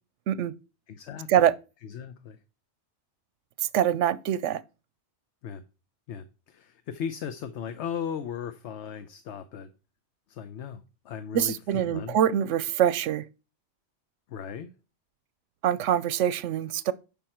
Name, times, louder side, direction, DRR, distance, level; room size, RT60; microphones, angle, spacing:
voice 1, 0.9-1.5 1.8-2.4 5.4-5.6 6.1-9.7 10.3-12.2 14.3-14.7, left 8 dB, 75° left, 1.0 m, -37 dB
voice 2, 3.7-4.6 11.3-13.2 15.6-16.9, right 10 dB, 90° right, 0.9 m, -24 dB
10.5 x 5.5 x 4.4 m
omnidirectional pair, 1.2 m